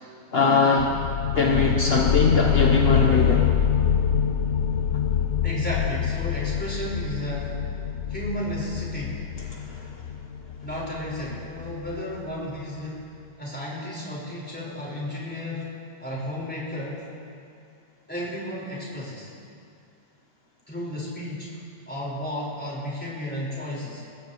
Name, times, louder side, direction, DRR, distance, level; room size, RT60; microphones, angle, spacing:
voice 1, 0.3-0.9 1.3-3.5 9.8-9.9, left 4 dB, 60° left, -1 dB, 1.3 m, -21 dB
sound 1, 0.8-12.2, left 8 dB, 80° left, 0.9 m, -25 dB
voice 2, 5.4-7.5 8.1-9.3 10.6-13.1 13.4-15.7 16.0-17.1 18.1-19.3 20.7-21.6 21.9-24.1, left 1 dB, 10° left, -6 dB, 4.9 m, -33 dB
27.5 x 15.0 x 3.1 m, 2.4 s
omnidirectional pair, 1.2 m